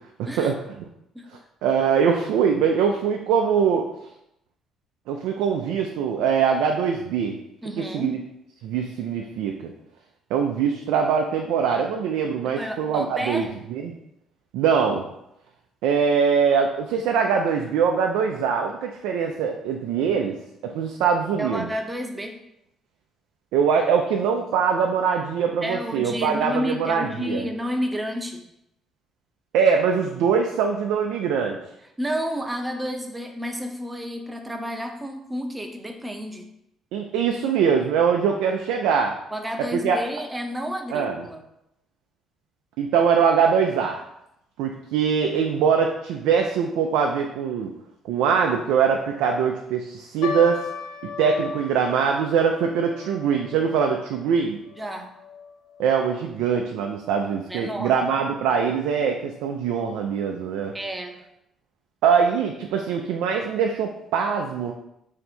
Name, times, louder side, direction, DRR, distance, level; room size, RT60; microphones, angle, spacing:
voice 1, 0.2-0.6 1.6-3.9 5.1-7.4 7.8-8.2 8.6-9.7 10.3-14.0 14.5-15.1 15.8-20.3 20.6-21.7 23.5-27.5 29.5-31.6 36.9-39.1 39.7-40.0 40.9-41.1 42.8-44.0 44.6-47.7 48.1-50.6 51.2-54.6 55.8-60.7 62.0-64.7, right 6 dB, 85° right, 2 dB, 0.3 m, -22 dB
voice 2, 7.6-8.2 12.4-13.5 21.4-22.4 25.6-28.5 32.0-36.5 39.3-41.5 54.7-55.1 57.5-58.0 60.7-61.2, equal, 15° right, 4 dB, 0.6 m, -30 dB
sound 1, 50.2-56.7 57.0-57.1 57.8-58.1 58.7-58.8 59.2-59.3, left 6 dB, 90° left, 0.4 m, -38 dB
3.3 x 2.8 x 4.2 m, 0.81 s
supercardioid pair, 75°, 0 cm